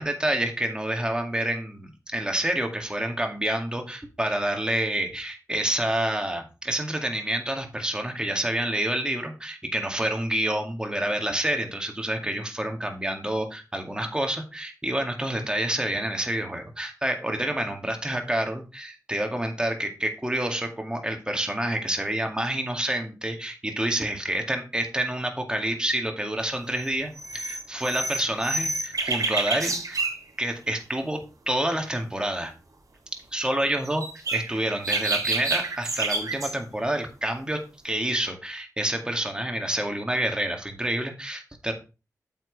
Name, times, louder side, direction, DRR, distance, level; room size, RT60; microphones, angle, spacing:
voice 1, 0.0-30.0 30.4-32.5 33.1-41.7, right 1 dB, 15° right, 3 dB, 2.1 m, -28 dB
sound 1, 26.8-26.9 27.2-30.2 33.8-36.5, right 3 dB, 65° right, 3.5 m, -28 dB
9.2 x 7.4 x 3.3 m, 0.30 s
wide cardioid pair, 65°, 6 cm